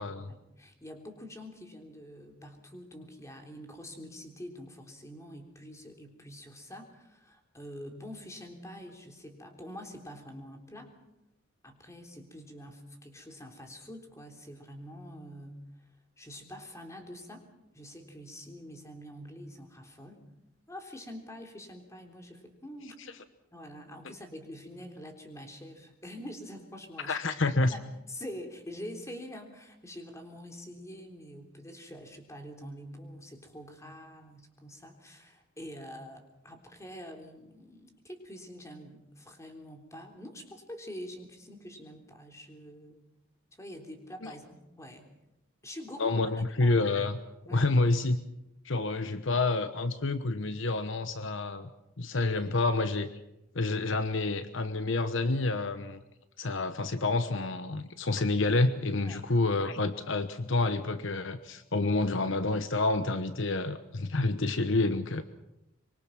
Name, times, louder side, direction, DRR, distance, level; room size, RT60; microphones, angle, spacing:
voice 1, 0.3-10.9 11.6-15.9 16.2-17.5 17.7-20.2 20.7-23.0 23.5-27.2 27.7-27.8 28.1-43.0 43.5-45.1 45.6-46.2 46.6-46.8 47.5-47.7 59.0-59.2, equal, 15° left, 4 dB, 3.5 m, -46 dB
voice 2, 27.0-27.7 44.2-44.3 46.0-47.2 47.5-48.2 48.6-51.7 52.0-53.1 53.5-56.0 56.4-65.2, left 2 dB, 65° left, 10 dB, 1.1 m, -28 dB
24.5 x 23.5 x 6.0 m, 0.87 s
head